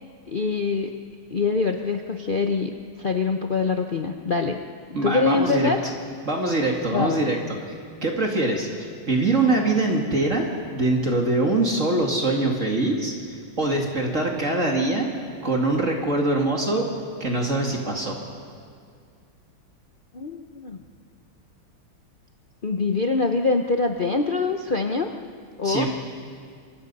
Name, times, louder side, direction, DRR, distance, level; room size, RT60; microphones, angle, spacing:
voice 1, 0.3-0.9 1.3-4.6 5.0-5.8 6.9-7.2 20.1-20.8 22.6-25.1 25.6-25.9, left 4 dB, 65° left, 4 dB, 0.5 m, -24 dB
voice 2, 4.9-5.7 6.3-7.4 8.0-15.1 15.4-16.9 17.2-18.2 25.6-25.9, right 2 dB, 35° right, 0 dB, 2.4 m, -23 dB
26.0 x 24.0 x 5.5 m, 2.2 s
omnidirectional pair, 2.3 m